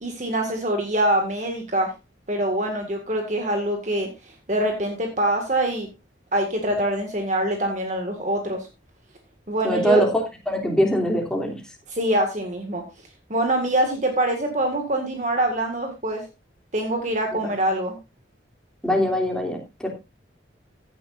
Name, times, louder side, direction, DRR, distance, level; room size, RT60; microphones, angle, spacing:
voice 1, 0.0-1.9 2.3-5.9 6.3-8.7 9.5-10.0 11.9-12.8 13.3-16.2 16.7-18.0, right 1 dB, 40° right, 3 dB, 1.9 m, -24 dB
voice 2, 9.6-10.1 10.5-11.5 18.8-19.9, equal, 5° left, 1 dB, 3.0 m, -22 dB
16.0 x 9.9 x 2.6 m, 0.24 s
head